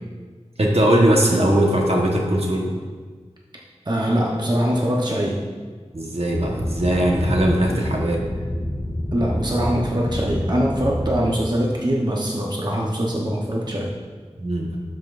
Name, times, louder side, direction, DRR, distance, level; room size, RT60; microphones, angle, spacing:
voice 1, 0.6-2.7 5.9-8.5 14.4-14.8, right 1 dB, 60° right, -1 dB, 1.2 m, -20 dB
voice 2, 3.9-5.4 7.6-7.9 9.1-13.9, equal, 40° right, -2 dB, 0.9 m, -23 dB
sound 1, 6.3-11.3, equal, 40° left, 1.7 m, -28 dB
12.5 x 5.8 x 2.5 m, 1.5 s
wide cardioid pair, 45°, 11 cm